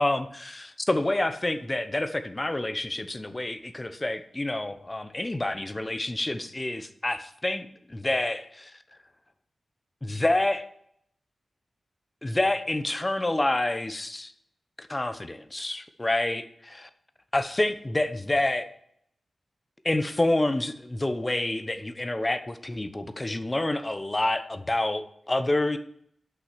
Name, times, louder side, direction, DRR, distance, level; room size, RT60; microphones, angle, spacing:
voice 1, 0.0-8.8 10.0-10.7 12.2-14.3 14.8-16.9 17.3-18.7 19.8-25.8, left 1 dB, 25° left, 10 dB, 0.9 m, -28 dB
8.5 x 6.0 x 7.7 m, 0.70 s
cardioid pair, 65°, 0 cm